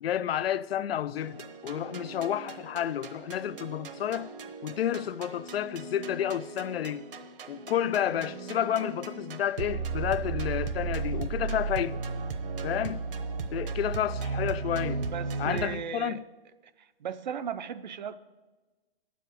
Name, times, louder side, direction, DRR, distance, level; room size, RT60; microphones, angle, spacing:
voice 1, 0.0-4.3 4.6-7.1 7.5-12.0 12.6-13.0 13.5-15.0 15.4-16.2, left 10 dB, 85° left, 0.5 m, -30 dB
sound 1, 1.2-15.8, right 4 dB, 65° right, 0.9 m, -35 dB
voice 2, 15.1-16.2 17.0-18.2, right 8 dB, 50° right, 0.5 m, -36 dB
9.2 x 7.7 x 5.2 m
hypercardioid pair, 170°, 29 cm